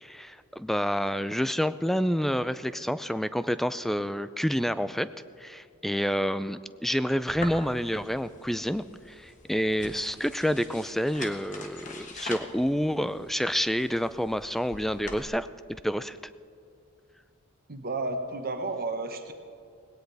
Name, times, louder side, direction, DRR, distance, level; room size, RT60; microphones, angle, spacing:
voice 1, 0.0-5.1 5.4-15.5 15.8-16.2, equal, ahead, 14 dB, 0.3 m, -28 dB
sound 1, 7.3-15.2, left 2 dB, 35° left, 1.3 m, -44 dB
voice 2, 17.7-19.3, right 3 dB, 45° right, 5 dB, 1.2 m, -32 dB
19.5 x 17.5 x 3.4 m, 2.5 s
head